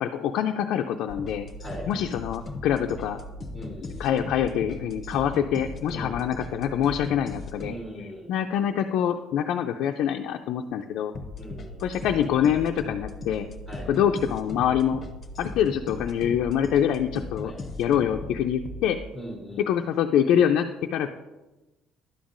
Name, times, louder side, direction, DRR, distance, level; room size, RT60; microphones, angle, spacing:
voice 1, 0.0-1.5 1.9-3.2 4.0-11.1 11.8-13.5 13.9-15.0 15.4-17.5 17.8-19.0 19.6-21.1, left 9 dB, 65° left, 3 dB, 0.3 m, -25 dB
sound 1, 1.1-7.7 11.1-19.0, left 2 dB, 25° left, 0.6 m, -38 dB
voice 2, 3.5-4.1 5.9-6.2 7.6-8.3 11.4-12.0 13.7-13.9 17.4-17.6 19.1-19.6, equal, 10° right, -4 dB, 1.2 m, -40 dB
11.0 x 7.1 x 2.5 m, 1.1 s
cardioid pair, 170°, 0 cm